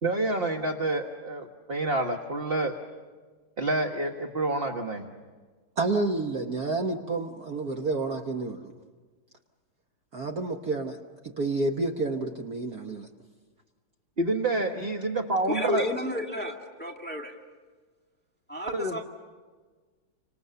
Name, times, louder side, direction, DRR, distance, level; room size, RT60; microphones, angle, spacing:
voice 1, 0.0-2.8 3.6-5.0 14.2-15.9 18.7-19.0, right 2 dB, 35° right, 4 dB, 1.2 m, -28 dB
voice 2, 5.8-8.7 10.1-11.0 11.2-13.1, right 3 dB, 50° right, 4 dB, 1.5 m, -29 dB
voice 3, 15.5-17.3 18.5-19.0, left 1 dB, 5° left, 1 dB, 1.9 m, -32 dB
30.0 x 26.0 x 6.9 m, 1.4 s
omnidirectional pair, 2.4 m